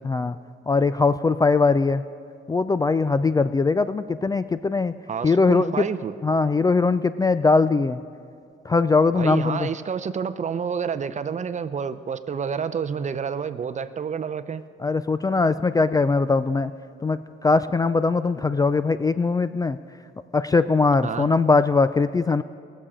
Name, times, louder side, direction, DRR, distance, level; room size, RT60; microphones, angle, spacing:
voice 1, 0.0-0.4 0.7-2.0 2.5-4.9 5.2-5.9 6.2-8.0 8.6-9.7 14.8-16.7 17.0-19.8 20.3-22.4, left 4 dB, 20° left, 0.3 m, -21 dB
voice 2, 5.1-6.1 9.1-14.6 21.0-21.3, right 6 dB, 35° right, 0.6 m, -29 dB
20.5 x 7.4 x 5.0 m
cardioid pair, 90°, 20 cm